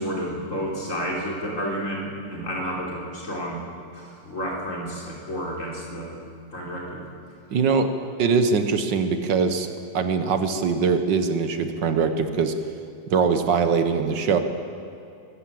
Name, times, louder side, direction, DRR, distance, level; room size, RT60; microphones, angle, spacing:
voice 1, 0.0-3.6 3.9-6.2 6.5-7.0, equal, 40° left, -2 dB, 4.0 m, -30 dB
voice 2, 7.5-7.9 8.2-9.7 9.9-12.5 13.1-14.4, right 5 dB, 70° right, 8 dB, 1.8 m, -22 dB
24.0 x 14.5 x 7.7 m, 2.5 s
omnidirectional pair, 2.0 m